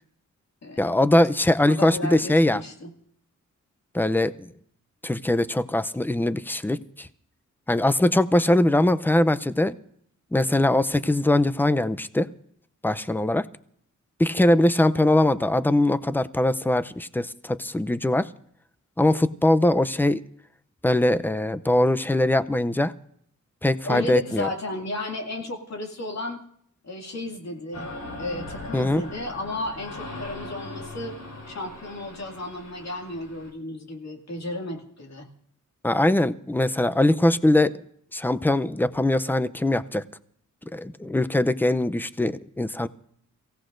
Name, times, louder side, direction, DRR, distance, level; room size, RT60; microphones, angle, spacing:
voice 1, 0.8-2.6 3.9-4.5 5.0-7.1 7.7-9.8 10.3-12.3 12.8-13.4 14.2-18.3 19.0-20.2 20.8-22.9 23.6-24.5 28.7-29.0 35.8-37.8 38.1-40.0 40.7-42.9, left 1 dB, 5° left, 12 dB, 0.6 m, -21 dB
voice 2, 1.7-2.9 14.4-14.6 23.8-26.4 26.8-27.9 28.2-31.1 31.5-35.3, left 2 dB, 55° left, 1 dB, 2.4 m, -33 dB
sound 1, 27.7-33.5, left 2 dB, 85° left, 5.0 m, -39 dB
29.5 x 16.5 x 2.6 m, 0.66 s
wide cardioid pair, 95°, 31 cm